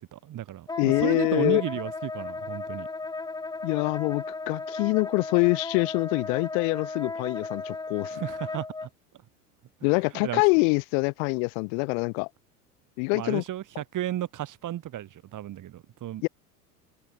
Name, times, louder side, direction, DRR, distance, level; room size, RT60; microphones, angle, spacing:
voice 1, 0.1-2.9 8.1-8.9 10.2-10.4 13.1-16.3, right 12 dB, 40° right, 3.1 m, -33 dB
Wind instrument woodwind instrument, 0.7-8.9, left 3 dB, 10° left, 1.0 m, -35 dB
voice 2, 0.8-1.6 3.6-8.2 9.8-12.3 13.0-13.4 16.2-16.3, left 37 dB, 60° left, 1.0 m, -25 dB
hypercardioid pair, 80°, 46 cm